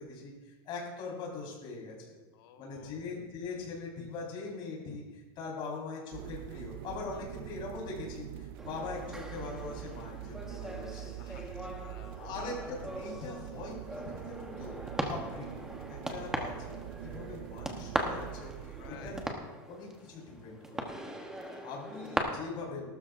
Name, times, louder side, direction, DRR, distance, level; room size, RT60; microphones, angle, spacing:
voice 1, 0.0-2.1 2.6-11.4 12.2-14.8 15.0-16.7 17.0-20.8 21.6-22.9, left 4 dB, 40° left, -2 dB, 4.6 m, -42 dB
voice 2, 2.3-3.1 11.2-12.2 15.0-15.1 18.7-19.2 21.3-21.7, left 9 dB, 70° left, 6 dB, 1.3 m, -55 dB
sound 1, 6.1-19.3, right 13 dB, 70° right, 0.4 m, -44 dB
sound 2, 8.6-22.2, right 1 dB, 5° right, 1.1 m, -40 dB
18.5 x 12.5 x 2.6 m, 1.2 s
supercardioid pair, 145°, 13 cm